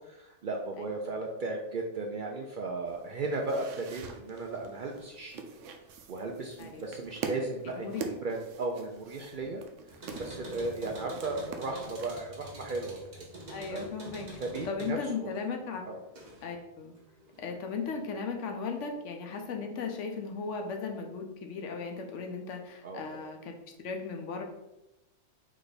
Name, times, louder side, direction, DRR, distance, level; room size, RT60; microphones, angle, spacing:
voice 1, 0.0-5.4 6.1-9.6 9.9-13.2 13.7-13.8 14.4-15.3 15.9-16.0 22.8-23.2, right 3 dB, 60° right, 1 dB, 0.5 m, -36 dB
sound 1, 2.9-12.1, right 5 dB, 85° right, 0.9 m, -44 dB
sound 2, 9.9-16.6 17.0-17.8, right 1 dB, 40° right, 0.9 m, -47 dB
voice 2, 13.5-14.4 14.6-15.8 16.4-16.9 17.4-24.4, left 5 dB, 80° left, 3 dB, 1.0 m, -36 dB
3.7 x 3.3 x 4.0 m, 0.92 s
omnidirectional pair, 1.3 m